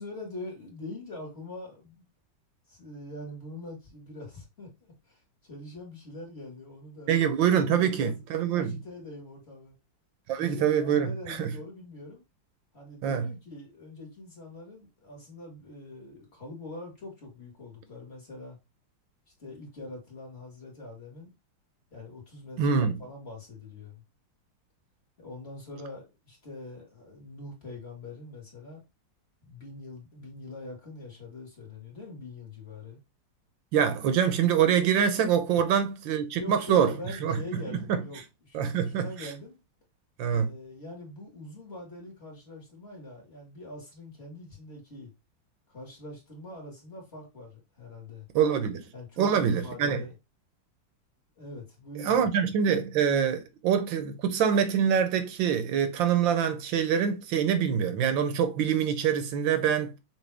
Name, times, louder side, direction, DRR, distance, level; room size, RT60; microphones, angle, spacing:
voice 1, 0.0-2.0 2.7-7.2 7.7-8.2 8.5-9.7 10.3-12.2 12.7-18.6 19.4-21.3 21.9-24.0 25.2-28.8 29.4-33.0 35.5-35.6 36.3-39.6 40.3-45.1 45.7-48.3 48.9-50.1 51.4-52.5, left 2 dB, 35° left, 1.9 m, -43 dB
voice 2, 7.1-8.7 10.3-11.5 13.0-13.3 22.6-23.0 33.7-36.9 37.2-38.0 38.5-39.1 40.2-40.5 48.3-48.8 49.2-50.0 52.0-60.0, right 8 dB, 80° right, 1.5 m, -25 dB
5.9 x 2.7 x 3.3 m
omnidirectional pair, 2.0 m